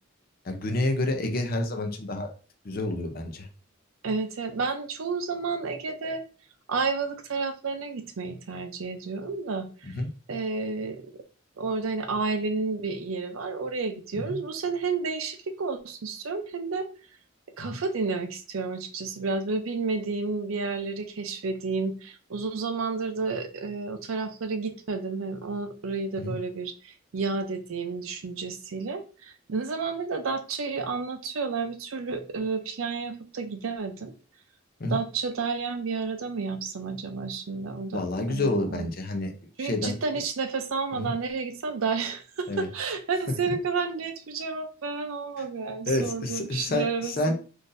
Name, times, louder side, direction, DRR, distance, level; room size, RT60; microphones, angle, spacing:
voice 1, 0.5-2.3 2.6-3.5 9.8-10.1 14.3-14.4 17.6-17.7 26.3-26.4 34.8-35.0 37.9-39.3 39.6-39.9 40.9-41.1 42.5-42.7 45.9-47.3, left 2 dB, 45° left, 5 dB, 0.6 m, -29 dB
voice 2, 4.0-6.2 6.7-9.9 10.3-11.0 11.6-16.9 17.6-34.1 34.9-38.9 39.6-47.3, right 4 dB, 90° right, 7 dB, 0.6 m, -31 dB
3.8 x 2.6 x 2.6 m, 0.36 s
head